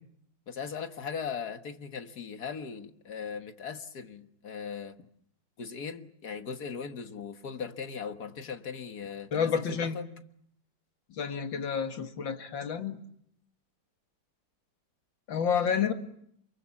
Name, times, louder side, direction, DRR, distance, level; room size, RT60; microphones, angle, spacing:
voice 1, 0.5-5.0 5.6-10.0 15.7-15.8, left 6 dB, 55° left, 1.9 m, -39 dB
voice 2, 9.3-10.0 11.2-13.0 15.3-15.9, left 7 dB, 80° left, 2.6 m, -29 dB
29.0 x 23.0 x 7.1 m
omnidirectional pair, 2.1 m